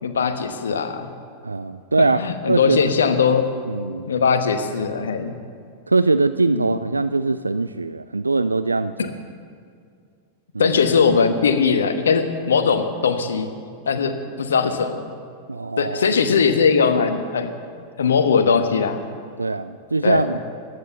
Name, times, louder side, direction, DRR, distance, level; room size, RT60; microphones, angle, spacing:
voice 1, 0.0-1.1 2.0-3.5 4.1-5.4 6.5-6.8 10.6-13.5 13.9-15.2 15.8-17.5 18.0-19.0 20.0-20.3, left 5 dB, 65° left, 8 dB, 1.2 m, -20 dB
voice 2, 1.4-2.2 2.5-2.8 3.7-4.1 5.9-9.1 10.5-10.8 15.5-16.1 19.4-20.4, right 3 dB, 80° right, 13 dB, 0.3 m, -22 dB
15.0 x 11.0 x 6.9 m, 2.3 s
figure-of-eight pair, 90°, 0 cm